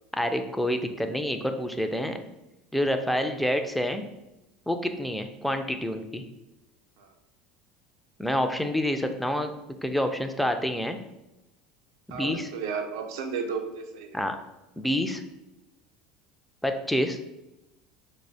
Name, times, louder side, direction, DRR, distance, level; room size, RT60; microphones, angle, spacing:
voice 1, 0.1-2.2 2.7-4.0 4.7-6.2 8.2-9.5 9.8-11.0 12.1-12.5 14.1-14.4 14.8-15.2 16.6-17.2, equal, ahead, 6 dB, 0.3 m, -27 dB
voice 2, 12.1-14.2, right 5 dB, 80° right, 5 dB, 0.4 m, -33 dB
4.3 x 2.0 x 2.6 m, 0.95 s
hypercardioid pair, 85°, 2 cm